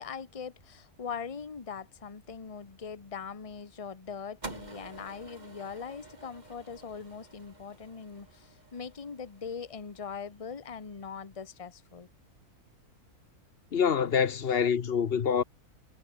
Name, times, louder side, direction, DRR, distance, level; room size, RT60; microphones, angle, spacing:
voice 1, 0.0-12.1, left 6 dB, 25° left, 1.1 m, -41 dB
sound 1, 4.4-10.8, right 2 dB, 30° right, 2.7 m, -49 dB
voice 2, 13.7-15.4, left 7 dB, 45° left, 1.0 m, -26 dB
omnidirectional pair, 1.6 m